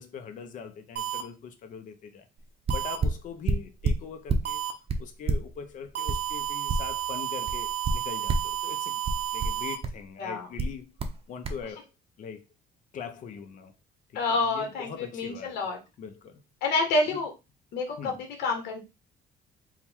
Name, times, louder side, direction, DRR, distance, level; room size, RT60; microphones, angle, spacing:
voice 1, 0.0-2.3 2.7-4.6 5.0-9.0 9.3-11.0 11.3-11.9 12.2-12.4 12.9-13.7 14.1-15.7 16.0-16.4 17.1-17.2 18.0-18.2, left 6 dB, 50° left, 0.6 m, -41 dB
sound 1, 1.0-1.2 2.7-3.0 4.5-4.7 6.0-9.8, right 11 dB, 75° right, 0.8 m, -32 dB
sound 2, 2.4-2.5 2.7-4.5 4.9-7.1 7.5-8.6 9.0-10.0 10.6-11.2 11.4-11.6, right 3 dB, 35° right, 0.7 m, -28 dB
voice 2, 14.1-15.8 16.6-17.3 17.7-18.8, left 3 dB, 80° left, 1.1 m, -28 dB
3.7 x 2.2 x 4.4 m
cardioid pair, 110°, 17 cm